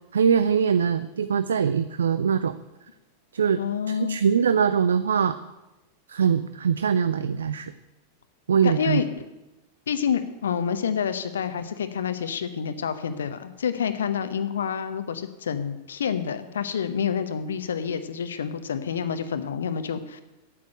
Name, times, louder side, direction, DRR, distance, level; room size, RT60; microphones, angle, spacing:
voice 1, 0.1-2.6 3.3-5.4 6.1-7.7 8.5-9.0, right 7 dB, 70° right, 13 dB, 0.4 m, -22 dB
voice 2, 3.6-4.2 8.6-9.1 9.9-20.2, left 7 dB, 65° left, 10 dB, 0.8 m, -28 dB
8.9 x 8.5 x 8.8 m, 1.0 s
figure-of-eight pair, 90°, 0 cm